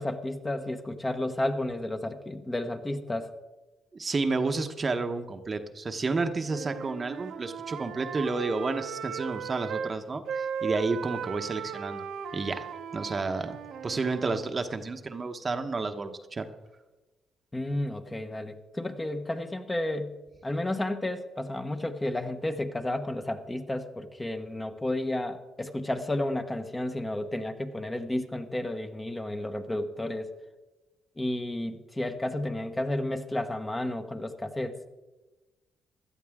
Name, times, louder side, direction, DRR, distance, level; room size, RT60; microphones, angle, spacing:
voice 1, 0.0-3.3 17.5-20.2 20.4-30.3 31.2-34.7, left 1 dB, 15° left, 7 dB, 1.1 m, -32 dB
voice 2, 3.9-12.0 12.3-12.7 12.9-13.6 13.8-16.5, right 3 dB, 35° right, 7 dB, 1.0 m, -31 dB
Wind instrument woodwind instrument, 6.4-9.9 10.3-14.5, right 7 dB, 70° right, 0.9 m, -37 dB
16.5 x 12.0 x 3.6 m, 1.1 s
cardioid pair, 90°, 0 cm